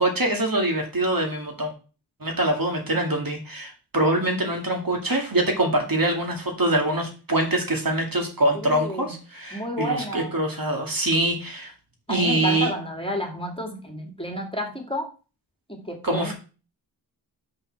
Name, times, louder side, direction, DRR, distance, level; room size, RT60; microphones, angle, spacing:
voice 1, 0.0-1.7 2.2-11.7 12.1-12.7 16.0-16.3, right 1 dB, 55° right, 1 dB, 2.4 m, -24 dB
voice 2, 8.6-9.2 9.5-10.4 12.1-15.1 15.7-16.3, right 1 dB, 15° left, 3 dB, 2.3 m, -30 dB
5.6 x 5.5 x 6.1 m, 0.35 s
cardioid pair, 40°, 42 cm